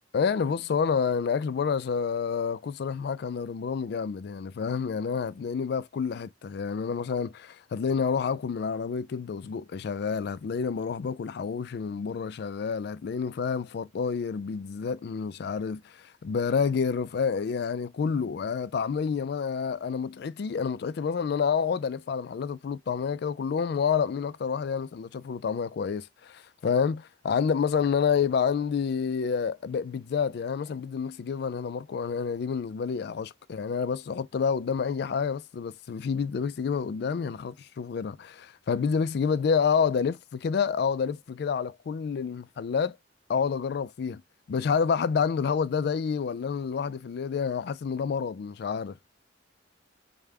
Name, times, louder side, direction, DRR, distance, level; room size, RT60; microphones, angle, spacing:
voice 1, 0.1-43.0 43.3-44.2 44.5-49.0, left 6 dB, 55° left, 0.3 m, -29 dB
5.0 x 2.2 x 3.3 m
head